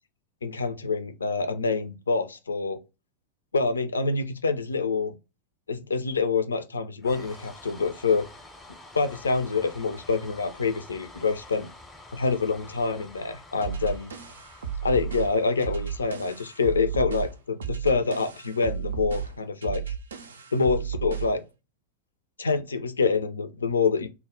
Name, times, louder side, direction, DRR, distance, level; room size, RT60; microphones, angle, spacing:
voice 1, 0.4-2.8 3.5-5.2 5.7-8.3 8.9-11.7 12.1-14.1 14.8-19.9 20.5-21.4 22.4-24.1, left 4 dB, 75° left, 0.3 m, -26 dB
sound 1, 7.0-17.3, left 2 dB, 10° left, 0.5 m, -48 dB
sound 2, 13.6-21.4, right 8 dB, 70° right, 0.3 m, -34 dB
2.1 x 2.0 x 3.5 m
figure-of-eight pair, 90°, 0 cm